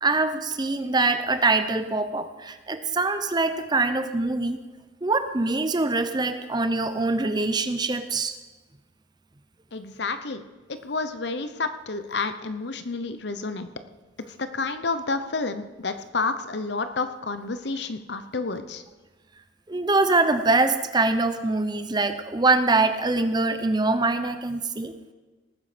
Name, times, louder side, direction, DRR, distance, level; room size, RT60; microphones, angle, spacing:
voice 1, 0.0-4.6 5.0-8.4 19.7-24.9, right 3 dB, 20° right, 10 dB, 0.7 m, -24 dB
voice 2, 9.7-10.4 10.7-13.7 14.3-18.8, left 3 dB, 60° left, 10 dB, 0.9 m, -30 dB
19.0 x 9.5 x 5.1 m, 1.2 s
head